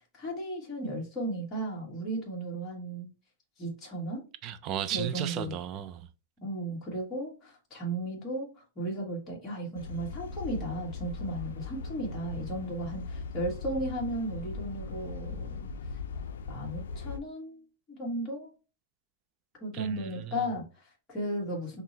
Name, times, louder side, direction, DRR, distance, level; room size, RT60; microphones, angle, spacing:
voice 1, 0.1-3.1 3.6-4.2 4.9-5.5 6.4-15.7 16.5-18.5 19.6-21.8, right 1 dB, 15° left, 1.3 m, -35 dB
voice 2, 4.4-6.1 19.7-20.4, right 10 dB, 25° right, 0.3 m, -35 dB
sound 1, 9.8-17.2, left 4 dB, 90° left, 0.3 m, -39 dB
5.7 x 2.0 x 2.6 m
supercardioid pair, 170°, 0 cm